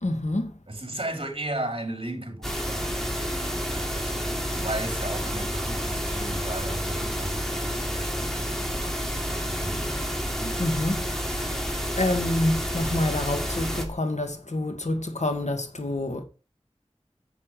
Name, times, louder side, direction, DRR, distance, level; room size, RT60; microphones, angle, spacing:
voice 1, 0.0-0.5 10.6-16.2, left 1 dB, 90° left, 2.2 m, -28 dB
voice 2, 0.7-8.5 9.2-10.1 10.4-10.6, right 1 dB, 50° right, 4.0 m, -36 dB
sound 1, 2.4-13.8, equal, 5° left, 3.5 m, -29 dB
10.5 x 8.5 x 5.0 m
wide cardioid pair, 40°, 11 cm